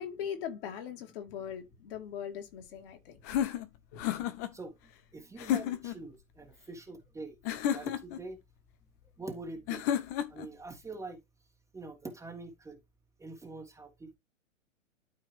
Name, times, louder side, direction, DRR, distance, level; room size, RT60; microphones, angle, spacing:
voice 1, 0.0-3.2 3.9-4.0, left 8 dB, 45° left, 2.3 m, -40 dB
sound 1, 3.2-4.5 5.4-6.0 7.5-8.2 9.7-10.5, left 10 dB, 15° left, 0.4 m, -32 dB
voice 2, 5.1-7.4 7.7-8.4 9.2-9.9 10.3-11.2 11.7-12.8 13.2-14.2, right 3 dB, 5° right, 1.4 m, -44 dB
12.5 x 4.2 x 3.2 m
figure-of-eight pair, 115°, 40 cm